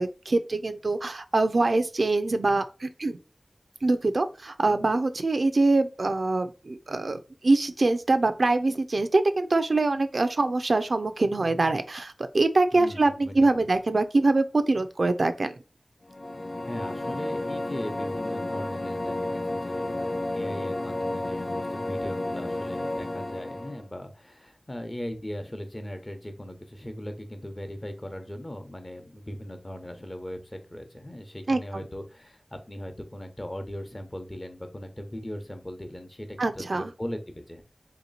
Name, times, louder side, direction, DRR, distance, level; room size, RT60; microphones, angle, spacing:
voice 1, 0.0-3.2 3.8-15.5 31.5-31.8 36.4-36.9, right 2 dB, 70° right, 0.4 m, -24 dB
voice 2, 12.7-13.7 16.6-37.6, equal, 30° left, 0.9 m, -39 dB
sound 1, 16.1-23.9, left 1 dB, 50° left, 0.4 m, -32 dB
3.1 x 2.9 x 4.0 m
wide cardioid pair, 60°, 0 cm